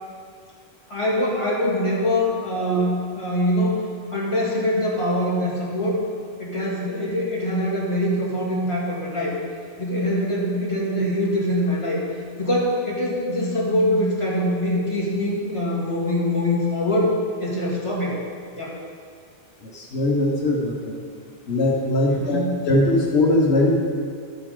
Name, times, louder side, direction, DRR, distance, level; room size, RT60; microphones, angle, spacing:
voice 1, 0.9-3.8 4.1-6.0 6.4-9.3 9.8-12.0 12.4-17.1 17.4-18.2 18.6-18.8 22.1-22.6, left 1 dB, 30° left, -6 dB, 2.2 m, -23 dB
voice 2, 19.6-21.0 21.5-23.8, left 1 dB, 85° left, -1 dB, 1.4 m, -21 dB
12.5 x 7.9 x 3.8 m, 2.2 s
omnidirectional pair, 1.1 m